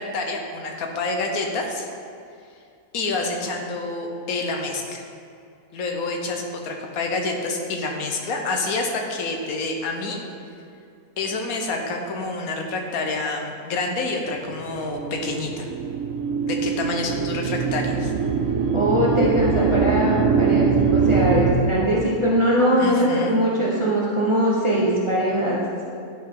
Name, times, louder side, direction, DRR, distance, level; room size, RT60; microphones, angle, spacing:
voice 1, 0.0-1.9 2.9-5.0 5.7-10.2 11.2-15.7 16.4-18.1 22.8-23.4, left 3 dB, 70° left, 2 dB, 1.3 m, -28 dB
sound 1, 14.3-21.5, right 5 dB, 70° right, 1.0 m, -22 dB
voice 2, 18.7-25.6, equal, 25° right, -6 dB, 1.0 m, -21 dB
11.0 x 4.6 x 3.8 m, 2.4 s
omnidirectional pair, 1.6 m